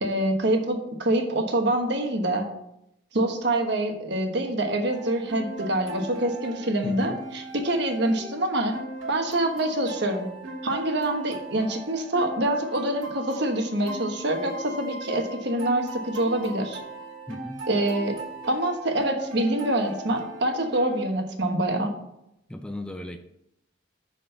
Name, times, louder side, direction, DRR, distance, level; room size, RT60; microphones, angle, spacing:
voice 1, 0.0-2.5 3.1-8.7 9.1-10.3 10.6-16.8 17.7-18.2 18.5-21.9, right 1 dB, 55° right, 4 dB, 1.3 m, -25 dB
sound 1, 4.9-21.1, right 2 dB, 90° right, 2.2 m, -39 dB
voice 2, 6.8-7.2 17.3-17.6 22.5-23.2, left 1 dB, 5° left, 6 dB, 0.4 m, -35 dB
6.3 x 5.7 x 6.8 m, 0.82 s
head